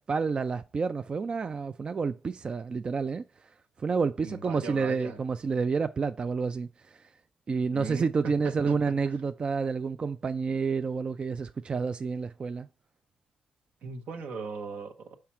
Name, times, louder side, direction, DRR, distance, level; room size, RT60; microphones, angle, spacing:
voice 1, 0.1-7.1 7.5-12.7, right 5 dB, 40° right, 0.3 m, -29 dB
voice 2, 4.2-5.2 7.7-8.9 13.8-15.2, right 4 dB, 70° right, 1.0 m, -38 dB
5.8 x 4.8 x 4.3 m
supercardioid pair, 60°, 3 cm